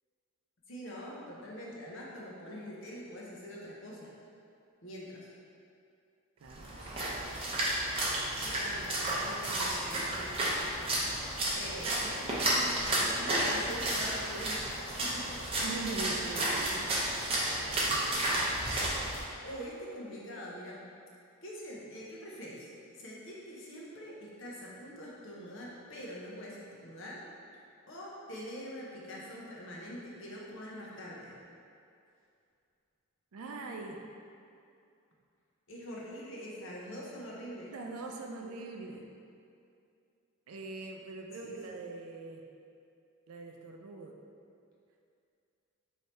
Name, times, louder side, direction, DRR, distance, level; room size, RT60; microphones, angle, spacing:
voice 1, 0.7-4.1 4.8-5.3 8.3-10.7 11.5-14.6 15.0-15.5 16.6-16.8 18.1-18.4 19.4-20.8 21.4-22.7 23.0-27.2 27.9-31.4 35.7-37.7 41.4-41.8, equal, 65° left, -4 dB, 0.7 m, -44 dB
voice 2, 6.4-7.1 15.6-16.9 17.6-18.4 33.3-34.0 37.7-39.1 40.5-42.4 43.3-44.1, right 3 dB, 90° right, 2 dB, 0.4 m, -42 dB
Splash splatter, 6.5-19.2, right 1 dB, 25° right, 0.6 m, -32 dB
3.3 x 2.7 x 4.2 m, 2.5 s
head